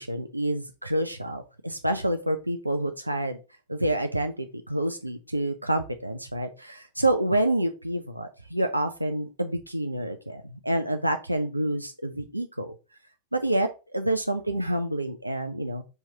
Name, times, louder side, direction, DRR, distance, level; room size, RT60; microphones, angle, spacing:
voice 1, 0.0-3.4 3.7-12.7 13.3-15.8, right 1 dB, 85° right, 6 dB, 0.3 m, -28 dB
5.5 x 3.0 x 2.7 m, 0.31 s
figure-of-eight pair, 90°, 0 cm